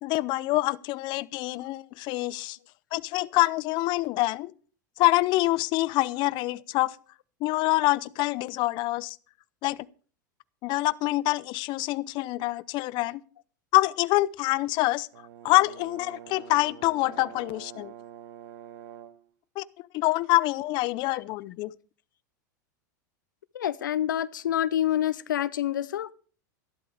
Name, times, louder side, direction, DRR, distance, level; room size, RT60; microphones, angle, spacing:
voice 1, 0.0-2.6 2.9-4.5 5.0-7.0 7.4-9.2 9.6-9.9 10.6-13.2 13.7-15.1 15.4-17.9 19.6-19.7 19.9-21.7, left 19 dB, 50° left, 0.7 m, -26 dB
Brass instrument, 15.1-19.3, right 11 dB, 70° right, 1.4 m, -46 dB
voice 2, 23.5-26.1, left 11 dB, 85° left, 0.6 m, -27 dB
13.5 x 12.0 x 4.9 m
hypercardioid pair, 105°, 10 cm